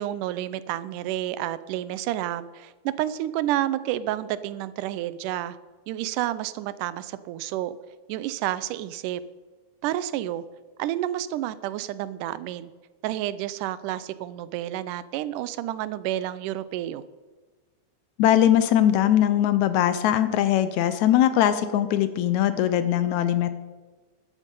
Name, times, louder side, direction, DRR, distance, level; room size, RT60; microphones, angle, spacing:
voice 1, 0.0-5.6 5.9-7.8 8.1-9.2 9.8-10.4 10.8-12.7 13.0-17.0, right 13 dB, 85° right, 15 dB, 2.2 m, -30 dB
voice 2, 18.2-23.5, left 11 dB, 75° left, 12 dB, 1.9 m, -21 dB
12.0 x 12.0 x 5.4 m, 1.3 s
omnidirectional pair, 3.6 m